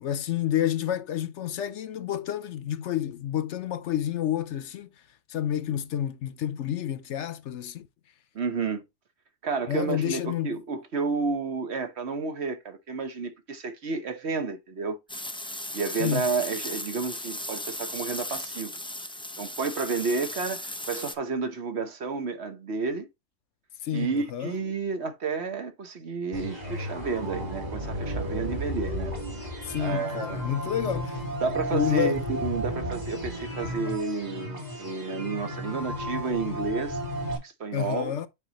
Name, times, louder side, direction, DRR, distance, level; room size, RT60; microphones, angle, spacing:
voice 1, 0.0-4.9 5.3-7.9 9.7-10.6 16.0-16.3 23.8-24.6 29.6-31.2 31.7-32.2 37.7-38.3, left 10 dB, 70° left, 0.9 m, -29 dB
voice 2, 8.3-8.8 9.4-15.0 15.7-18.7 19.4-23.1 23.9-29.1 29.8-30.5 31.4-37.0 37.4-38.1, right 4 dB, 60° right, 1.3 m, -31 dB
sound 1, 15.1-21.1, left 1 dB, 5° left, 0.4 m, -36 dB
sound 2, 26.3-37.4, equal, 30° right, 2.9 m, -33 dB
9.0 x 5.3 x 2.9 m
omnidirectional pair, 1.3 m